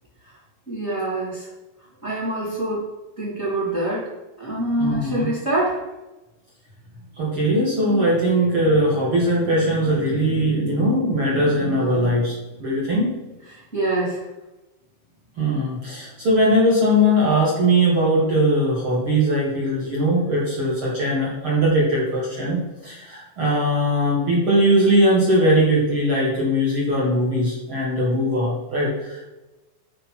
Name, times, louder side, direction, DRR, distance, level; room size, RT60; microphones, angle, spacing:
voice 1, 0.7-1.5 2.0-2.8 3.2-4.1 4.4-5.9 7.7-8.2 13.4-14.3, right 1 dB, 25° right, -5 dB, 1.5 m, -26 dB
voice 2, 4.8-5.3 7.1-13.1 15.4-29.3, equal, 50° right, -6 dB, 1.6 m, -20 dB
8.8 x 5.1 x 4.5 m, 1.0 s
omnidirectional pair, 5.6 m